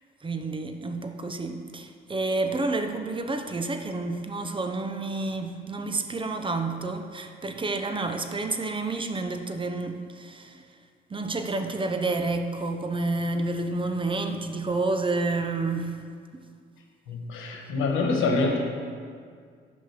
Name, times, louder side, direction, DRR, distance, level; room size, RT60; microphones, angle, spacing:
voice 1, 0.2-10.6 11.1-16.0, right 3 dB, 25° right, 6 dB, 0.7 m, -29 dB
voice 2, 17.1-18.6, left 3 dB, 85° left, 1 dB, 1.4 m, -25 dB
7.7 x 5.3 x 6.7 m, 2.1 s
cardioid pair, 90°, 20 cm